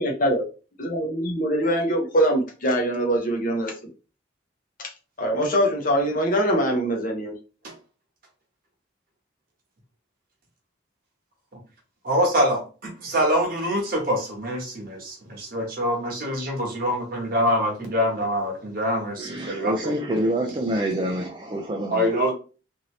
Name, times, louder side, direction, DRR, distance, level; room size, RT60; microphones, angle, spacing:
voice 1, 0.0-0.4 0.8-3.7 5.2-7.3, equal, 45° left, 0 dB, 0.8 m, -23 dB
voice 2, 12.0-20.2 21.9-22.3, equal, 50° right, 0 dB, 1.1 m, -25 dB
voice 3, 19.2-22.1, right 1 dB, 25° right, 0 dB, 0.4 m, -27 dB
2.7 x 2.7 x 3.1 m, 0.35 s
head